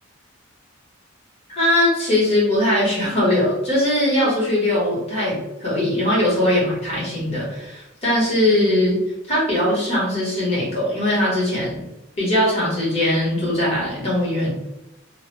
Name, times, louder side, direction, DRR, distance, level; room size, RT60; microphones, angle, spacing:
voice 1, 1.5-9.0 9.3-11.8 12.2-14.5, left 1 dB, 30° left, -7 dB, 1.2 m, -20 dB
2.4 x 2.1 x 3.1 m, 0.93 s
head